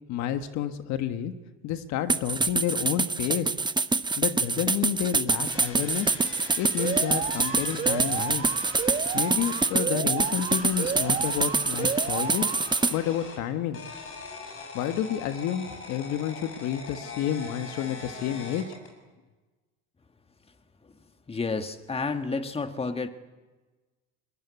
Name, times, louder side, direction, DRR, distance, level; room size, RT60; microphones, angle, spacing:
voice 1, 0.1-1.3 1.6-3.5 4.2-6.1 6.6-8.5 9.1-12.5 12.9-13.8 14.7-18.6, left 10 dB, 65° left, 1.5 m, -30 dB
sound 1, 2.1-13.0, right 4 dB, 15° right, 0.9 m, -26 dB
sound 2, 5.4-9.7 10.2-13.4 13.7-18.9, left 4 dB, 50° left, 7.5 m, -42 dB
Alarm, 6.8-12.8, right 6 dB, 30° right, 1.4 m, -32 dB
voice 2, 21.3-23.1, left 4 dB, 20° left, 1.7 m, -30 dB
22.0 x 21.0 x 8.4 m
supercardioid pair, 80°, 29 cm